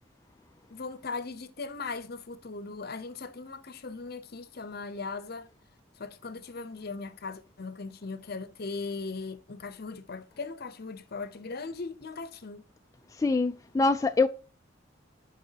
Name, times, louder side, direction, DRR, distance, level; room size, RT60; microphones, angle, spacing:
voice 1, 0.7-5.5 6.0-12.6, left 4 dB, 55° left, 0.8 m, -39 dB
voice 2, 13.2-14.3, left 3 dB, 15° left, 0.3 m, -24 dB
9.5 x 5.4 x 2.8 m
head